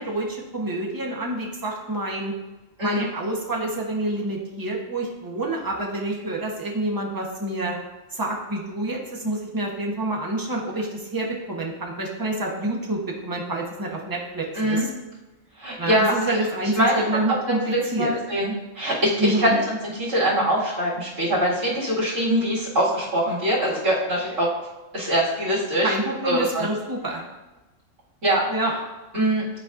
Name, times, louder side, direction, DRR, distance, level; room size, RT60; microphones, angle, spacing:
voice 1, 0.0-2.3 2.8-7.8 8.1-14.9 15.8-18.1 19.2-19.6 25.8-27.2 28.5-28.7, right 2 dB, 20° right, -1 dB, 0.9 m, -27 dB
voice 2, 14.5-14.9 15.6-16.1 16.6-17.0 17.5-24.5 24.9-25.9 26.2-26.7 28.2-28.4 29.1-29.4, equal, 70° right, -9 dB, 2.4 m, -23 dB
9.9 x 4.1 x 2.5 m, 1.1 s
omnidirectional pair, 1.4 m